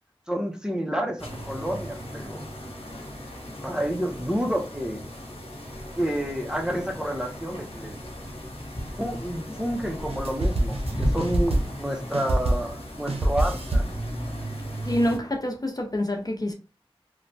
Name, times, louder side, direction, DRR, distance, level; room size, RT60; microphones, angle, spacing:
voice 1, 0.3-2.5 3.6-5.0 6.0-8.0 9.0-13.8, equal, 5° right, 0.6 m, -29 dB
sound 1, 1.2-15.2, equal, 85° left, 0.8 m, -37 dB
sound 2, 10.0-11.9 12.1-12.8 13.1-14.0, right 1 dB, 80° right, 0.5 m, -25 dB
voice 2, 14.8-16.5, left 1 dB, 40° left, 0.5 m, -27 dB
3.0 x 2.1 x 2.6 m
wide cardioid pair, 45°, 10 cm